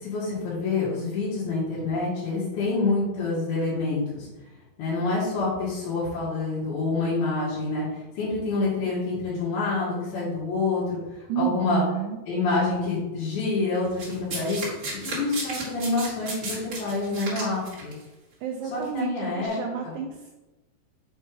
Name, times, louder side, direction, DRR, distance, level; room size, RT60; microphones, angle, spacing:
voice 1, 0.0-4.3 4.8-11.8 12.3-14.6 15.0-17.9 18.7-19.6 19.8-20.0, left 3 dB, 80° left, -8 dB, 3.8 m, -27 dB
voice 2, 11.3-12.2 18.4-20.3, right 9 dB, 80° right, 2 dB, 2.1 m, -30 dB
Domestic sounds home sounds, 14.0-17.9 18.8-19.0, right 3 dB, 40° right, 2.2 m, -34 dB
7.4 x 3.4 x 4.7 m, 1.1 s
omnidirectional pair, 4.3 m